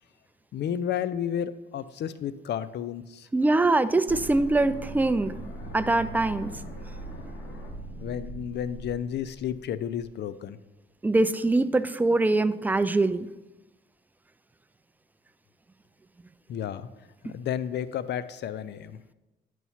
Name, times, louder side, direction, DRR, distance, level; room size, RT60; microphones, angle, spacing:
voice 1, 0.5-3.3 8.0-10.6 16.5-16.9 17.2-19.0, left 9 dB, 60° left, 15 dB, 0.4 m, -32 dB
voice 2, 3.3-5.3 5.7-6.5 11.0-13.3, right 2 dB, 10° right, 13 dB, 0.3 m, -23 dB
sound 1, 4.1-10.1, right 1 dB, 80° left, 1.4 m, -40 dB
9.2 x 3.1 x 5.6 m, 1.0 s
cardioid pair, 90°, 20 cm